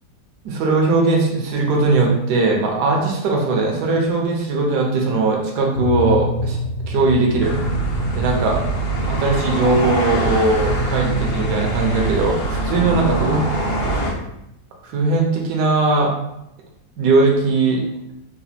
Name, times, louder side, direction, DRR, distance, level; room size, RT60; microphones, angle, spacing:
voice 1, 0.4-6.6 6.9-7.6 8.1-8.6 9.1-13.4 14.8-16.1 17.0-17.8, right 3 dB, 85° right, 0 dB, 1.3 m, -19 dB
sound 1, 5.7-14.3, left 1 dB, 60° left, 0.9 m, -29 dB
sound 2, 7.4-14.1, right 2 dB, 85° left, 1.6 m, -23 dB
4.1 x 2.4 x 2.7 m, 0.84 s
omnidirectional pair, 1.7 m